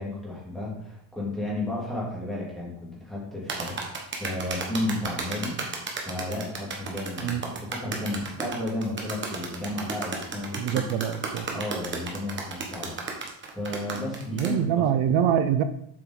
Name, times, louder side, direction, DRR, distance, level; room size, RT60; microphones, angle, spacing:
voice 1, 0.0-5.6 6.0-10.8 11.5-13.0 13.5-15.2, left 1 dB, ahead, -6 dB, 2.6 m, -33 dB
sound 1, 3.5-14.5, right 4 dB, 25° right, 1.1 m, -33 dB
voice 2, 10.6-11.6 14.3-15.6, right 9 dB, 85° right, 9 dB, 0.7 m, -25 dB
7.7 x 5.9 x 3.9 m, 0.72 s
cardioid pair, 170°, 46 cm